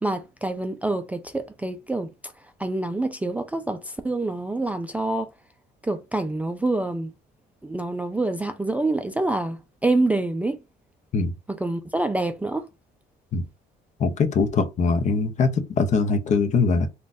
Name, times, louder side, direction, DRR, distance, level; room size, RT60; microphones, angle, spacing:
voice 1, 0.0-2.1 2.6-5.3 5.8-7.1 7.6-10.6 11.5-12.7, right 2 dB, 10° right, 0.3 m, -26 dB
voice 2, 14.0-16.9, left 4 dB, 45° left, 0.7 m, -22 dB
3.7 x 2.3 x 2.5 m
cardioid pair, 110°, 17 cm